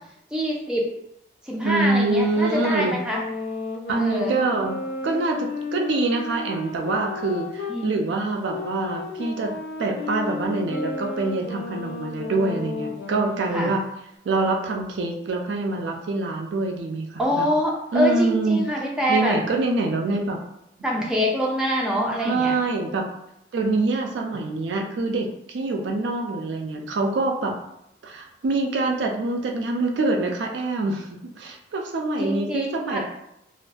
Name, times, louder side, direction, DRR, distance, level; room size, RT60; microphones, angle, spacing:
voice 1, 0.3-0.8 1.4-3.2 4.0-4.4 7.7-8.0 13.5-13.7 17.2-19.4 20.8-22.6 32.2-33.0, equal, 5° right, -3 dB, 0.4 m, -25 dB
voice 2, 1.6-2.9 3.9-4.7 5.0-9.5 9.8-13.8 14.2-17.5 17.9-18.6 19.1-20.4 22.2-23.0 23.5-27.6 28.0-31.1 31.4-33.0, right 3 dB, 85° right, 2 dB, 0.4 m, -25 dB
sound 1, 2.3-7.8 8.4-13.6, left 3 dB, 85° left, 0.4 m, -33 dB
2.5 x 2.4 x 2.2 m, 0.80 s
head